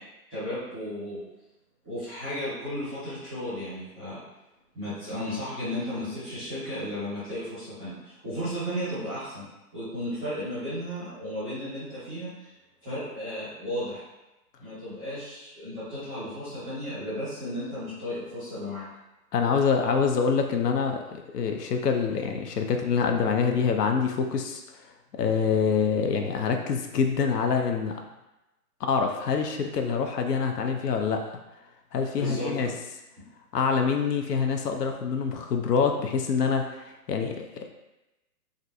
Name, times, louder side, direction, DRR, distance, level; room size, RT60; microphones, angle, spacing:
voice 1, 0.3-1.2 1.8-4.2 4.7-9.4 9.7-12.5 12.8-14.0 14.6-18.8 32.2-32.7, equal, 5° left, -17 dB, 0.8 m, -34 dB
voice 2, 19.3-24.6 25.1-28.0 28.8-31.2 31.9-32.7 33.5-37.7, left 6 dB, 85° left, 4 dB, 0.6 m, -26 dB
3.2 x 2.5 x 2.6 m, 0.98 s
hypercardioid pair, 180°, 46 cm